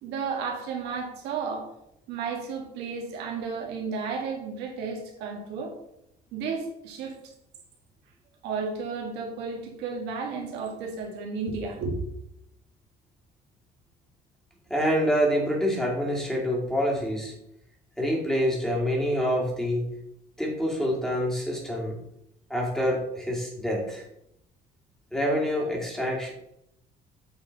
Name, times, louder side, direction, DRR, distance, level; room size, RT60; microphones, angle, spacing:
voice 1, 0.0-1.7 2.1-5.7 6.3-7.3 8.4-12.0, right 5 dB, 90° right, 0 dB, 1.8 m, -33 dB
voice 2, 14.7-17.3 18.0-19.9 20.4-21.9 22.5-24.0 25.1-26.3, equal, 5° left, -2 dB, 2.2 m, -26 dB
7.9 x 4.2 x 4.0 m, 0.79 s
cardioid pair, 110°, 17 cm